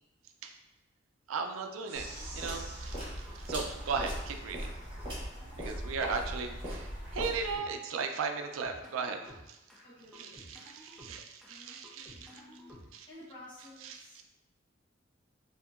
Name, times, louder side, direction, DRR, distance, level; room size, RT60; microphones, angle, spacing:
voice 1, 1.3-2.1 2.3-4.7 5.6-9.6 10.1-12.6 12.9-13.1 13.8-14.2, right 5 dB, 85° right, 5 dB, 0.3 m, -37 dB
sound 1, 1.5-1.6 2.0-2.5 3.3-3.4 3.7-4.2 5.0-5.1 5.4-5.9 6.5-6.8 7.5-8.1 8.4-9.8 10.1-11.6 11.8-13.1, equal, ahead, 0.5 m, -54 dB
sound 2, 1.9-7.6, equal, 25° right, 1.1 m, -39 dB
sound 3, 1.9-4.5, right 2 dB, 55° right, 0.7 m, -50 dB
voice 2, 9.8-10.4 11.5-12.8 13.1-14.2, left 1 dB, 25° left, -10 dB, 1.1 m, -53 dB
2.8 x 2.5 x 2.4 m, 0.94 s
head